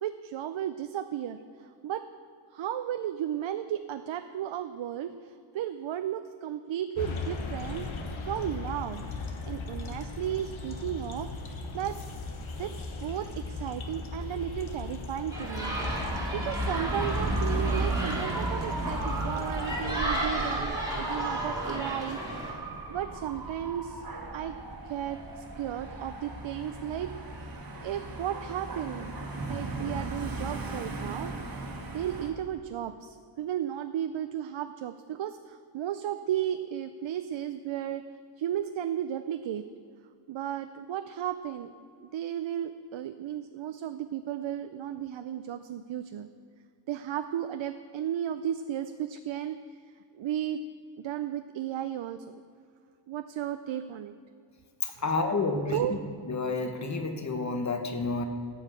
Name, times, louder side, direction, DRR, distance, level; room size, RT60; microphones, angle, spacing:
voice 1, 0.0-2.0 2.5-7.9 8.3-9.0 9.5-12.0 12.6-15.8 16.3-22.6 22.9-24.1 24.3-24.6 24.8-27.1 27.4-27.5 27.8-29.1 29.5-31.3 31.6-38.0 38.4-39.6 40.3-41.7 42.0-46.3 46.9-49.6 50.1-50.6 51.0-52.2 53.1-54.1 54.9-55.0 55.5-56.0, right 10 dB, 70° right, 10 dB, 0.5 m, -34 dB
sound 1, 7.0-20.0, left 3 dB, 75° left, 1.4 m, -38 dB
sound 2, 15.3-22.5, right 1 dB, 5° right, 2.4 m, -34 dB
Dog / Motorcycle, 15.5-32.3, right 2 dB, 45° right, 1.5 m, -35 dB
voice 2, 55.0-55.8 56.3-58.2, left 3 dB, 35° left, 5 dB, 1.1 m, -29 dB
14.0 x 5.7 x 8.2 m, 2.3 s
wide cardioid pair, 155°, 48 cm